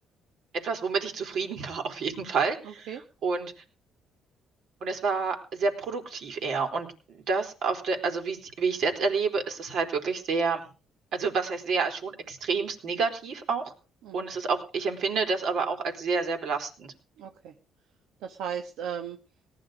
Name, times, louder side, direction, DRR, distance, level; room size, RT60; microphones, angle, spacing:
voice 1, 0.5-2.9 3.2-3.5 4.8-10.7 11.1-13.7 14.1-16.9, right 4 dB, 65° right, 4 dB, 4.2 m, -29 dB
voice 2, 2.6-3.0 14.0-14.2 17.2-17.6 18.2-19.2, right 8 dB, 85° right, 5 dB, 1.4 m, -36 dB
18.5 x 11.0 x 5.2 m, 0.36 s
cardioid pair, 115°, 0 cm